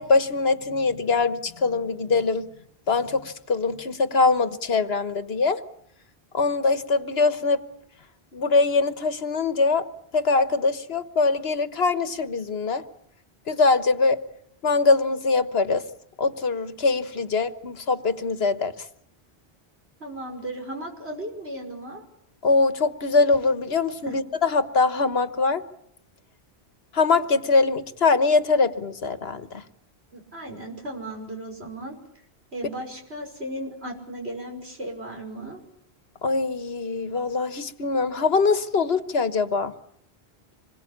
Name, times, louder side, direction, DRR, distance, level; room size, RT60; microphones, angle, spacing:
voice 1, 0.0-2.5 2.9-5.6 6.3-7.6 8.3-9.8 10.1-12.8 13.5-14.2 14.6-15.8 16.2-18.8 22.4-25.6 26.9-29.6 36.2-39.7, left 4 dB, 70° left, 11 dB, 1.5 m, -22 dB
voice 2, 20.0-22.0 24.1-24.2 30.1-32.0 32.5-35.6, right 1 dB, 75° right, 2 dB, 6.1 m, -35 dB
26.5 x 21.5 x 8.7 m, 0.72 s
omnidirectional pair, 1.1 m